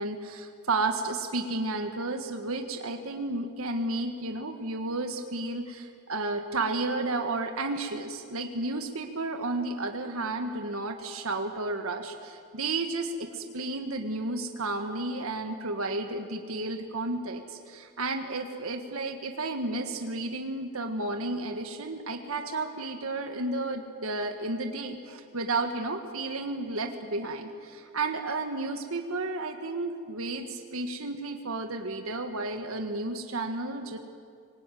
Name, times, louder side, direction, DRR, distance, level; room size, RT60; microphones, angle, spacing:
voice 1, 0.0-34.0, right 2 dB, 75° right, 5 dB, 1.6 m, -32 dB
24.5 x 20.0 x 9.2 m, 2.4 s
head